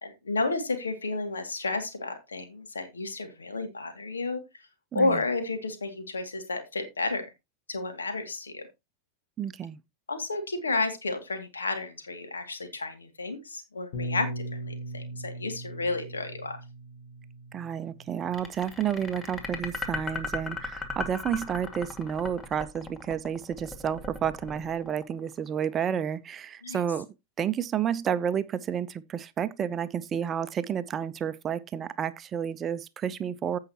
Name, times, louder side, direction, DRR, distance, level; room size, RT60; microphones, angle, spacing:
voice 1, 0.0-4.6 4.9-7.3 7.7-8.6 10.1-16.6 26.6-26.8, left 3 dB, 75° left, 2.4 m, -31 dB
voice 2, 9.4-9.8 17.5-27.1 27.4-33.6, right 8 dB, 25° right, 0.6 m, -30 dB
Bass guitar, 13.9-18.4 19.2-20.2, right 1 dB, 55° left, 2.1 m, -39 dB
sound 1, 18.3-25.5, left 3 dB, 15° left, 2.0 m, -36 dB
15.5 x 5.7 x 2.9 m
figure-of-eight pair, 90°, 0 cm